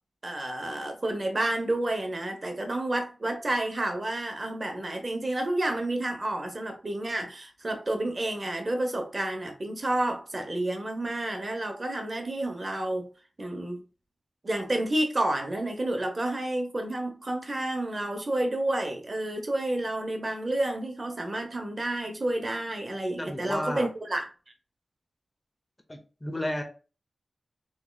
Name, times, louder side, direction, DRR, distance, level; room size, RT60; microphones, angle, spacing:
voice 1, 0.2-13.1 13.4-13.8 14.4-24.2, right 1 dB, 40° right, 0.8 m, -30 dB
voice 2, 23.2-23.9 25.9-26.6, left 1 dB, 25° left, 0.6 m, -32 dB
3.6 x 3.0 x 2.3 m
wide cardioid pair, 65°, 0 cm